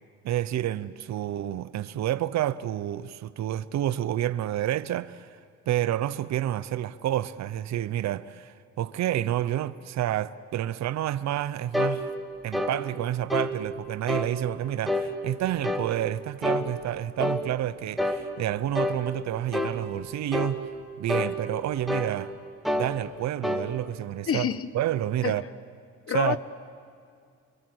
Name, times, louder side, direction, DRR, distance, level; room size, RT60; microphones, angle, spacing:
voice 1, 0.2-5.4 5.7-12.1 12.4-20.7 21.0-22.3 22.7-24.5 24.7-25.4 26.1-26.4, right 12 dB, 60° right, 0.7 m, -29 dB
sound 1, 11.7-12.0 12.5-12.8 13.3-13.5 14.1-14.3 14.9-15.1 15.6-15.9 16.4-16.7 17.2-17.4 18.0-18.2 18.7-19.0 19.5-19.8 20.3-20.6 21.1-21.3 21.9-22.1 22.6-22.9 23.4-23.6, left 1 dB, ahead, 2.1 m, -27 dB
voice 2, 24.3-24.7 25.2-25.4 26.1-26.4, left 8 dB, 50° left, 1.0 m, -27 dB
28.5 x 23.5 x 7.8 m
cardioid pair, 80°, 30 cm